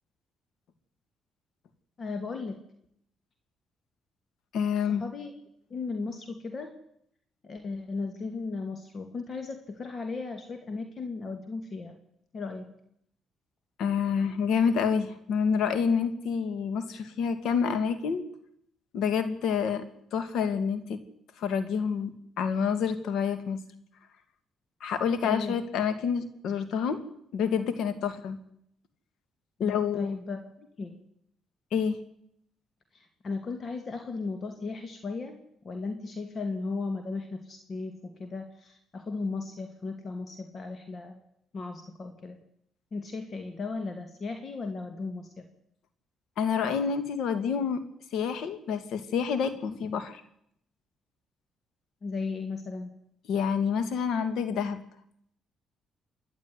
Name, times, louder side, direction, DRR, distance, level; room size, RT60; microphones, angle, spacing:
voice 1, 2.0-2.6 4.9-5.3 5.7-6.7 7.4-12.0 12.3-12.7 25.2-25.6 29.6-31.0 32.9-35.4 35.6-41.2 41.5-42.4 42.9-45.5 52.0-53.0, left 4 dB, 45° left, 6 dB, 2.4 m, -36 dB
voice 2, 4.5-5.0 13.8-18.2 18.9-19.8 20.1-21.0 21.4-23.6 24.8-27.0 27.3-28.4 29.6-30.1 31.7-32.0 46.4-47.8 48.1-50.2 53.3-54.8, left 6 dB, 80° left, 11 dB, 2.3 m, -28 dB
27.5 x 10.5 x 9.8 m, 0.74 s
cardioid pair, 90°, 0 cm